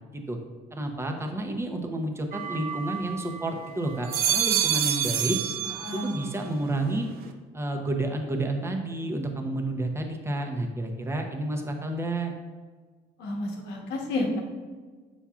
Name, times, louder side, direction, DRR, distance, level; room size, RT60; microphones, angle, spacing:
voice 1, 0.7-5.4 5.9-7.1 7.5-12.3, right 1 dB, 15° right, 3 dB, 0.8 m, -30 dB
sound 1, 2.3-3.5 3.9-6.3 6.7-7.3, right 10 dB, 65° right, 0.6 m, -28 dB
voice 2, 5.8-6.2 13.2-14.4, left 1 dB, 85° left, 0 dB, 1.2 m, -30 dB
7.0 x 5.6 x 2.4 m, 1.4 s
cardioid pair, 110°, 17 cm